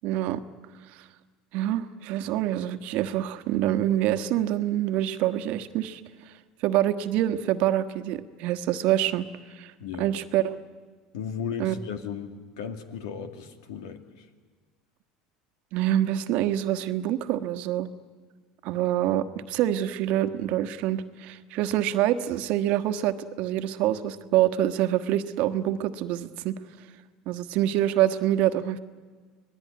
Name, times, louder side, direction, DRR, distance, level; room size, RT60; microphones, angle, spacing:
voice 1, 0.0-0.4 1.5-6.0 6.6-9.2 9.5-9.7 10.0-10.5 11.6-11.7 15.7-17.9 18.6-26.5 27.3-28.8, right 12 dB, 65° right, 10 dB, 1.3 m, -26 dB
voice 2, 9.8-10.1 11.1-14.3, left 7 dB, 80° left, 8 dB, 2.2 m, -36 dB
25.0 x 19.0 x 9.6 m, 1.5 s
supercardioid pair, 90°, 3 cm